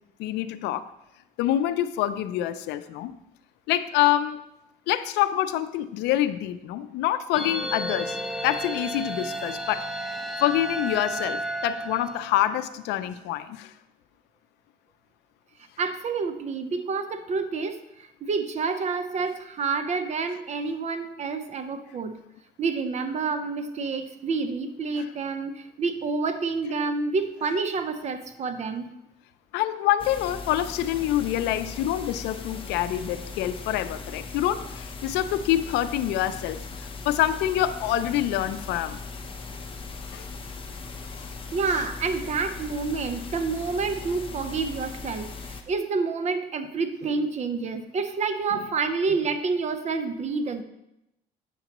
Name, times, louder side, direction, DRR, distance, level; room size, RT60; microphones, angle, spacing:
voice 1, 0.2-0.9 1.4-3.1 3.7-4.4 4.9-8.2 8.4-9.8 10.4-13.7 29.5-39.0 40.1-40.3 41.2-41.3 41.7-41.8, left 12 dB, 90° left, 13 dB, 0.5 m, -26 dB
sound 1, 7.3-12.7, right 1 dB, ahead, 0.6 m, -32 dB
voice 2, 15.8-22.2 22.6-28.9 41.5-50.6, right 4 dB, 40° right, 9 dB, 0.7 m, -28 dB
sound 2, 30.0-45.6, left 4 dB, 30° left, 0.8 m, -39 dB
8.2 x 6.9 x 2.9 m, 0.85 s
cardioid pair, 110°, 17 cm